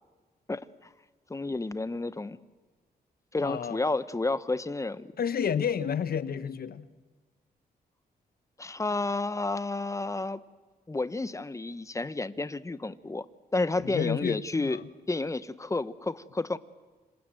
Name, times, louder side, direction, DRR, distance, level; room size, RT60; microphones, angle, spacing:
voice 1, 1.3-2.4 3.3-5.1 8.6-10.4 10.9-13.2 13.5-14.8 15.1-16.6, left 2 dB, 20° left, 15 dB, 1.1 m, -31 dB
voice 2, 3.4-3.8 5.2-6.9 13.8-14.9, left 7 dB, 65° left, 13 dB, 1.3 m, -30 dB
26.5 x 26.5 x 7.8 m, 1.3 s
cardioid pair, 80°, 17 cm